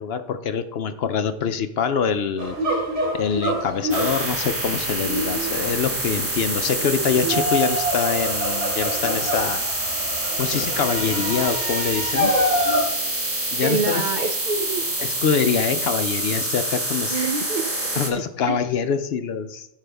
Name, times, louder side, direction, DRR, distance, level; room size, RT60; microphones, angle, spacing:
voice 1, 0.0-2.8 3.1-9.9 10.4-12.4 13.5-14.1 15.0-17.2 17.9-19.7, left 6 dB, 65° left, 10 dB, 0.8 m, -25 dB
sound 1, 2.4-12.8, right 1 dB, 85° right, 3.6 m, -26 dB
sound 2, 3.9-18.1, right 1 dB, 10° right, 1.2 m, -26 dB
voice 2, 13.6-14.9 17.1-17.8 18.4-18.6, right 4 dB, 50° right, 7 dB, 0.6 m, -26 dB
14.0 x 5.0 x 3.4 m, 0.81 s
omnidirectional pair, 1.2 m